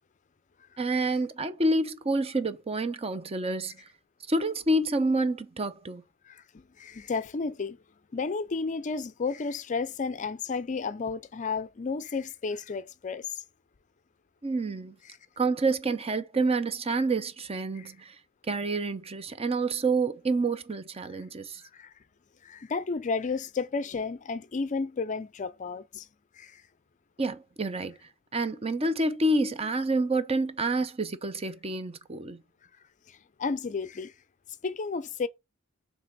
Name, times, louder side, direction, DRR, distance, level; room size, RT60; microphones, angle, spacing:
voice 1, 0.8-3.8 4.3-6.0 14.4-15.0 15.4-18.1 18.5-21.6 27.2-27.9 28.3-32.4, right 2 dB, 30° right, 0.7 m, -28 dB
voice 2, 6.8-7.8 8.1-13.4 15.1-15.2 17.7-17.9 21.6-21.9 22.4-26.1 26.4-26.6 33.1-34.1 34.6-35.3, left 4 dB, 35° left, 0.4 m, -32 dB
7.3 x 3.3 x 6.0 m
head